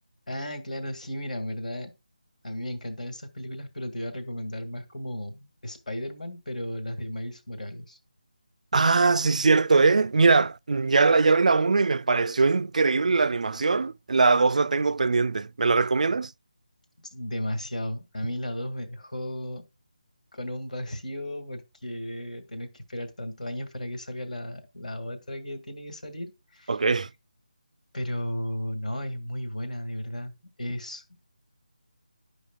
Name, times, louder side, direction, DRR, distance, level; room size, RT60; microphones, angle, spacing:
voice 1, 0.3-1.9 2.4-8.0 17.1-19.6 20.3-26.8 27.9-31.0, left 1 dB, 65° left, 1.9 m, -34 dB
voice 2, 8.7-16.3 26.7-27.1, right 4 dB, 60° right, 0.3 m, -21 dB
11.0 x 5.2 x 2.3 m
figure-of-eight pair, 165°, 4 cm